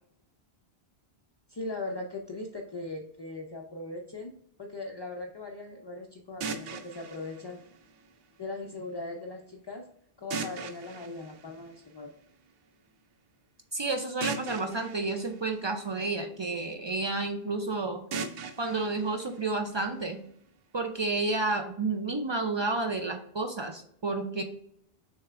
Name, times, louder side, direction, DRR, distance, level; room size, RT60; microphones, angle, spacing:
voice 1, 1.5-4.3 4.6-7.6 8.4-9.9 10.2-12.1, left 2 dB, 40° left, 1 dB, 0.4 m, -39 dB
sound 1, 6.4-8.4 10.3-12.3 14.2-16.4 18.1-20.1, right 5 dB, 70° right, 0.8 m, -40 dB
voice 2, 13.7-18.0 18.6-20.2 20.7-24.4, right 3 dB, 50° right, 5 dB, 0.3 m, -31 dB
6.4 x 3.4 x 2.4 m, 0.69 s
omnidirectional pair, 1.1 m